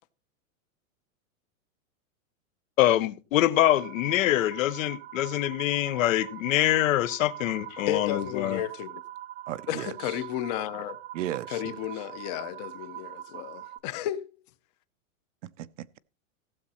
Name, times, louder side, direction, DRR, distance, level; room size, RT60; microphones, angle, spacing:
voice 1, 2.8-8.6, left 13 dB, 70° left, 0.9 m, -24 dB
sound 1, 3.6-13.8, right 13 dB, 20° right, 0.8 m, -43 dB
voice 2, 7.7-9.0 9.7-11.0 11.5-14.3, left 12 dB, 30° left, 0.6 m, -33 dB
voice 3, 9.5-10.2 11.1-11.6 15.4-16.0, right 13 dB, 60° right, 0.6 m, -36 dB
15.5 x 7.3 x 4.2 m
supercardioid pair, 160°, 41 cm